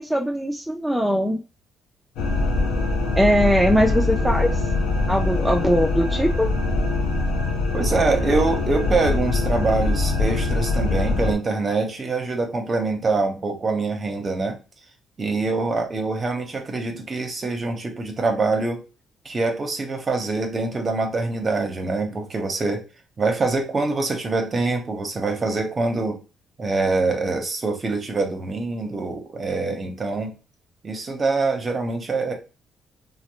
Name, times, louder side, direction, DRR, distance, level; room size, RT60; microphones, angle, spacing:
voice 1, 0.0-1.4 3.2-4.6 5.1-6.5, equal, ahead, 0 dB, 0.3 m, -20 dB
sound 1, 2.2-11.3, left 2 dB, 90° left, 0.4 m, -23 dB
voice 2, 7.7-14.6 15.2-18.8 19.2-22.8 23.2-26.2 26.6-30.3 30.8-32.3, right 3 dB, 35° right, 4 dB, 0.7 m, -24 dB
2.5 x 2.0 x 2.8 m, 0.33 s
cardioid pair, 90°, 0 cm